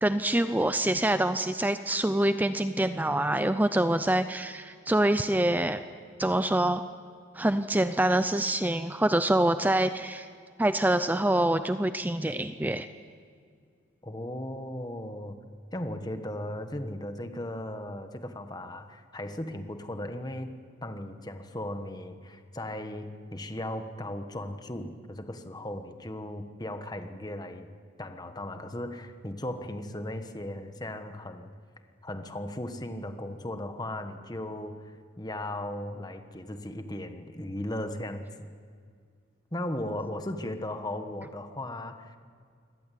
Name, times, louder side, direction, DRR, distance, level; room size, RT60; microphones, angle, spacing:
voice 1, 0.0-5.8 6.2-6.8 7.3-10.3 10.6-12.9, right 1 dB, 10° right, 11 dB, 0.5 m, -25 dB
voice 2, 14.0-15.4 15.7-20.5 20.8-27.7 28.0-31.5 32.0-38.5 39.5-42.2, left 1 dB, 20° left, 7 dB, 1.3 m, -37 dB
24.0 x 18.5 x 8.5 m, 2.1 s
head